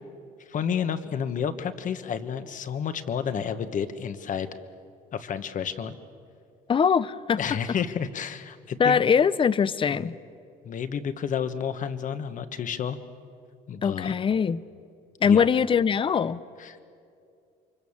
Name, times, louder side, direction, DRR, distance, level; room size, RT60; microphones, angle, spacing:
voice 1, 0.5-4.5 5.1-6.0 7.4-9.0 9.9-10.1 10.6-13.0 13.7-14.1 15.2-15.5 16.6-16.8, left 7 dB, 50° left, 10 dB, 1.4 m, -30 dB
voice 2, 6.7-7.4 8.8-10.1 13.8-14.6 15.2-16.4, left 7 dB, 30° left, 17 dB, 0.7 m, -22 dB
29.0 x 24.5 x 7.3 m, 2.5 s
cardioid pair, 110°, 17 cm